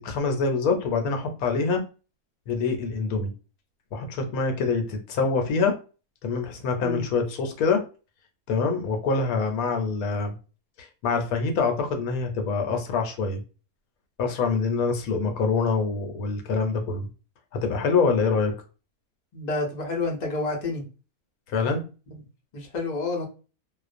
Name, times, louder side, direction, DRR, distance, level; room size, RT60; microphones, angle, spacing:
voice 1, 0.0-1.8 2.5-3.3 3.9-5.8 6.2-7.8 8.5-10.3 10.8-13.4 14.2-17.1 17.6-18.5 21.5-21.8, left 4 dB, 75° left, 4 dB, 1.0 m, -25 dB
voice 2, 19.3-20.8 22.1-22.2 22.5-23.3, left 3 dB, 55° left, 0 dB, 0.5 m, -29 dB
2.4 x 2.1 x 2.4 m, 0.33 s
omnidirectional pair, 1.6 m